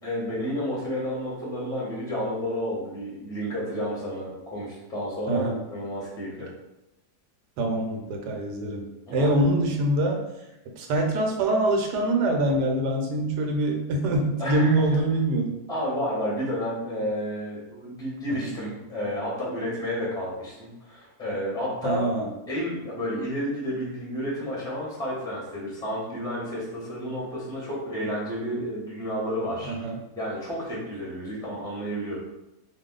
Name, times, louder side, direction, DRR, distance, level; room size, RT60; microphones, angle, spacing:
voice 1, 0.0-6.5 9.1-9.4 14.4-14.9 15.7-22.1 22.5-29.9 30.2-32.2, equal, 5° left, -6 dB, 0.6 m, -31 dB
voice 2, 5.3-5.6 7.6-10.2 10.8-15.6 18.3-18.5 21.8-22.3 29.7-30.0, right 1 dB, 80° right, 2 dB, 1.2 m, -24 dB
2.6 x 2.4 x 3.6 m, 0.92 s
omnidirectional pair, 1.8 m